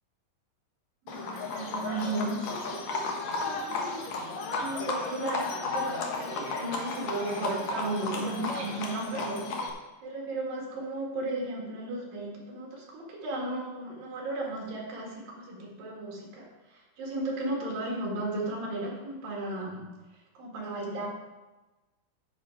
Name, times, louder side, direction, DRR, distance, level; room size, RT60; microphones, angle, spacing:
Livestock farm animals working animals, 1.1-9.7, left 3 dB, 70° left, 1.8 m, -34 dB
voice 1, 1.1-9.4 10.0-19.8 20.4-21.1, right 2 dB, 65° right, -3 dB, 3.8 m, -35 dB
9.9 x 7.7 x 4.7 m, 1.1 s
omnidirectional pair, 4.6 m